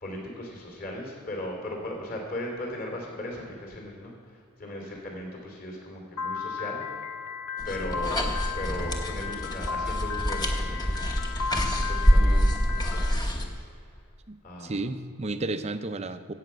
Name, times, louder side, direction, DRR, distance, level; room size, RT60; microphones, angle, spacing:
voice 1, 0.0-6.8 7.6-8.2 8.5-11.4 11.9-13.6 14.4-14.7, left 1 dB, 40° left, 0 dB, 3.0 m, -37 dB
Piano, 6.2-13.1, left 6 dB, 85° left, 0.7 m, -35 dB
sound 1, 7.6-13.4, equal, 20° left, 1.1 m, -26 dB
voice 2, 12.1-12.8 14.3-16.3, right 2 dB, 30° right, 10 dB, 0.5 m, -33 dB
16.0 x 5.8 x 7.9 m, 2.3 s
head